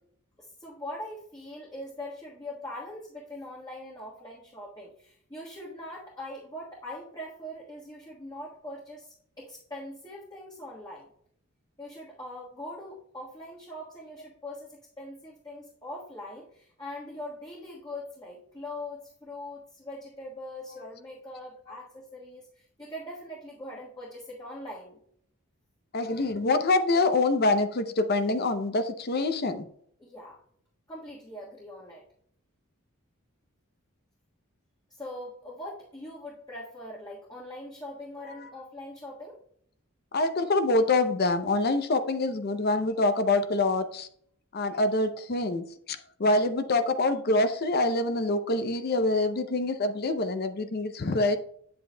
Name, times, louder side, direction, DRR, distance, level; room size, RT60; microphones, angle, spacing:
voice 1, 0.4-11.1 11.8-25.0 30.0-30.4 30.9-32.0 35.0-39.4, left 1 dB, 20° left, -5 dB, 1.4 m, -42 dB
voice 2, 25.9-29.6 38.4-38.5 40.1-44.1 44.5-51.4, left 2 dB, 45° left, 9 dB, 0.6 m, -25 dB
9.0 x 7.8 x 2.2 m, 0.65 s
head